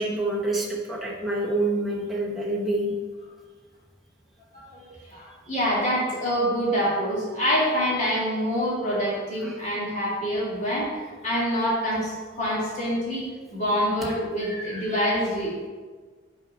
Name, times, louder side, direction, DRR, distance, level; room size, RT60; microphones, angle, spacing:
voice 1, 0.0-2.9 9.4-9.5, right 2 dB, ahead, -5 dB, 0.9 m, -27 dB
voice 2, 4.5-13.3 13.5-15.5, equal, 40° left, -6 dB, 2.0 m, -26 dB
5.7 x 4.2 x 5.3 m, 1.5 s
head